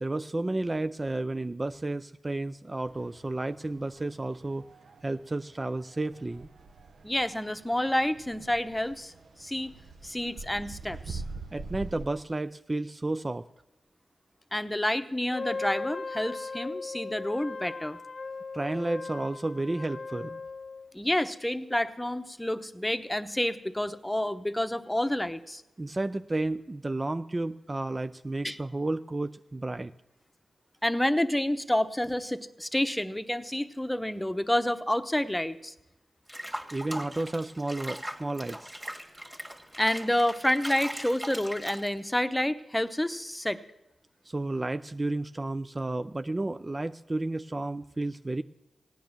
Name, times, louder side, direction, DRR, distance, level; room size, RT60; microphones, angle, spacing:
voice 1, 0.0-4.6 5.0-6.5 11.5-13.5 18.5-20.4 25.8-29.9 36.7-38.8 44.3-48.4, right 2 dB, 30° right, 11 dB, 0.4 m, -32 dB
sound 1, 2.8-12.1, right 4 dB, 75° right, 0.8 m, -45 dB
voice 2, 7.0-9.1 9.4-9.7 10.0-11.2 14.5-18.0 20.9-25.6 28.4-28.6 30.8-35.7 39.8-43.6, left 1 dB, 10° left, 11 dB, 0.9 m, -29 dB
Wind instrument woodwind instrument, 15.3-20.9, left 4 dB, 50° left, 0.5 m, -38 dB
Water / Bathtub (filling or washing), 36.3-42.2, equal, 10° right, 2.0 m, -40 dB
16.5 x 9.4 x 7.4 m, 0.92 s
cardioid pair, 45°, 0 cm